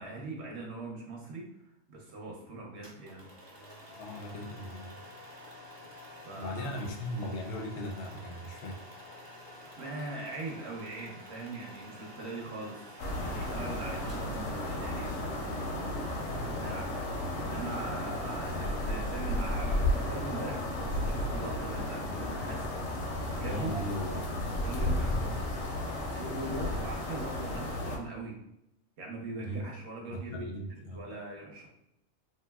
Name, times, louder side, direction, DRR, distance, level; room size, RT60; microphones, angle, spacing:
voice 1, 0.0-1.5 1.9-3.3 6.3-6.7 9.8-12.8 13.1-15.9 16.6-16.9 17.3-22.7 23.3-23.9 24.5-25.2 26.1-28.4 29.0-30.4 30.9-31.7, right 2 dB, 60° right, -1 dB, 0.9 m, -41 dB
sound 1, 2.8-15.1, left 1 dB, 30° right, 0.5 m, -49 dB
voice 2, 4.0-5.0 6.3-8.8 23.5-25.2 29.4-29.6 30.1-31.0, equal, 65° left, 2 dB, 0.6 m, -38 dB
sound 2, 13.0-28.0, left 1 dB, 85° left, 1.0 m, -33 dB
3.0 x 2.7 x 2.3 m, 0.82 s
omnidirectional pair, 1.4 m